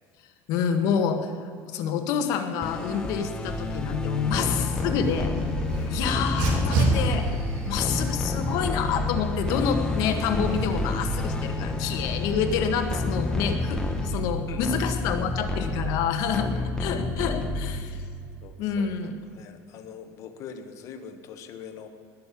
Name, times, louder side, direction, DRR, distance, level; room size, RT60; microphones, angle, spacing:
voice 1, 0.5-1.3 1.7-5.3 5.9-7.2 7.7-16.5 16.8-18.0 18.6-19.1, left 7 dB, 65° left, 6 dB, 1.6 m, -28 dB
sound 1, 2.6-18.0, left 2 dB, 10° left, 1.1 m, -29 dB
Dog, 4.3-13.4, right 2 dB, 75° right, 3.3 m, -33 dB
voice 2, 5.7-6.3 11.9-12.1 14.1-14.6 16.5-17.3 18.4-21.9, left 7 dB, 50° left, 7 dB, 1.4 m, -44 dB
20.0 x 6.8 x 8.5 m, 2.3 s
cardioid pair, 150°, 7 cm